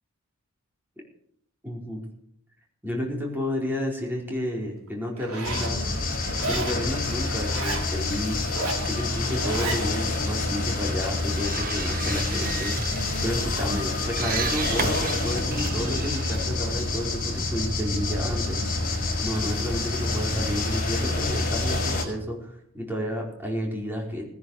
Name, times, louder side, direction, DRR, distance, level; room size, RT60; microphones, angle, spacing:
voice 1, 1.6-2.0 2.8-5.9 6.4-8.4 8.8-18.6 19.2-24.2, equal, 10° right, -1 dB, 4.5 m, -31 dB
Zipper (clothing), 5.2-5.7 6.4-6.8 7.4-7.9 8.4-8.9 9.4-9.8, right 3 dB, 70° right, 3.2 m, -32 dB
sound 1, 5.4-22.0, left 2 dB, 40° left, 5.5 m, -27 dB
sound 2, 11.0-17.5, right 5 dB, 40° right, 1.3 m, -34 dB
19.0 x 10.5 x 6.6 m, 0.67 s
head